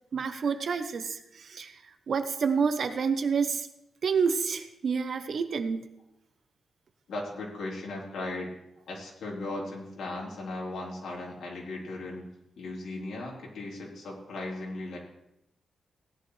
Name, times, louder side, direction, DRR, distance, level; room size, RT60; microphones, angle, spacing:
voice 1, 0.1-1.8 2.1-3.7 4.0-5.9, right 5 dB, 50° right, 9 dB, 0.9 m, -28 dB
voice 2, 7.1-8.5 8.9-12.3 12.6-15.0, left 2 dB, 80° left, -3 dB, 3.8 m, -37 dB
17.0 x 11.0 x 3.3 m, 0.85 s
wide cardioid pair, 170°, 0 cm